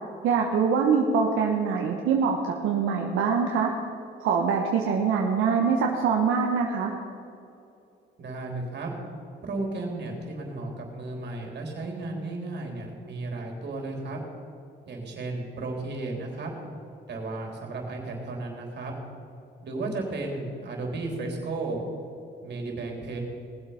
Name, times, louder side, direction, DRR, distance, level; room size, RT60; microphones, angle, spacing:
voice 1, 0.2-3.7 4.2-6.9, right 6 dB, 85° right, 0 dB, 1.2 m, -24 dB
voice 2, 8.2-8.9 9.4-14.2 14.9-16.5 17.1-18.9 19.6-21.9 22.4-23.2, right 2 dB, 60° right, 1 dB, 3.6 m, -34 dB
19.0 x 7.8 x 5.7 m, 2.6 s
cardioid pair, 90°, 20 cm